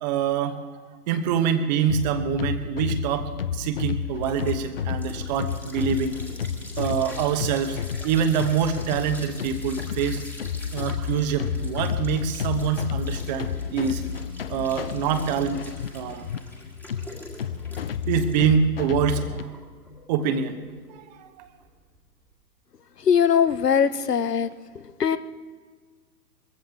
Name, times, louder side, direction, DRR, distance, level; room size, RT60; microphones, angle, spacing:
voice 1, 0.0-0.6 1.1-6.1 6.8-10.2 10.7-14.0 14.5-15.6 15.9-16.3 18.1-19.5 20.1-20.6 21.2-21.5, right 7 dB, 25° right, 9 dB, 1.1 m, -25 dB
sound 1, 1.9-19.4, left 7 dB, 40° left, 0.4 m, -31 dB
sound 2, 3.5-22.3, left 1 dB, 5° left, 1.8 m, -45 dB
voice 2, 23.0-24.5 24.7-25.2, left 7 dB, 70° left, 14 dB, 1.0 m, -21 dB
22.0 x 15.0 x 3.5 m, 1.5 s
figure-of-eight pair, 120°, 49 cm